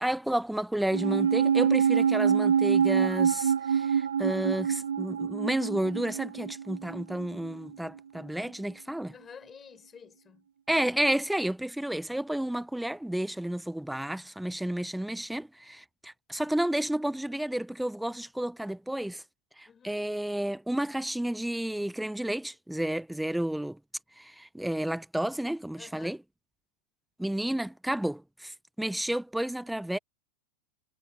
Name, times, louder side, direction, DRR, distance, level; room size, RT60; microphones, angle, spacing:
voice 1, 0.0-9.1 10.7-19.2 19.6-23.8 24.2-26.2 27.2-30.0, right 1 dB, 5° right, 0.8 m, -31 dB
sound 1, 0.9-7.5 7.7-7.8, right 7 dB, 80° right, 0.8 m, -26 dB
voice 2, 9.1-10.5 19.7-20.1 25.8-26.2, left 7 dB, 25° left, 4.8 m, -50 dB
hypercardioid pair, 90°, 0 cm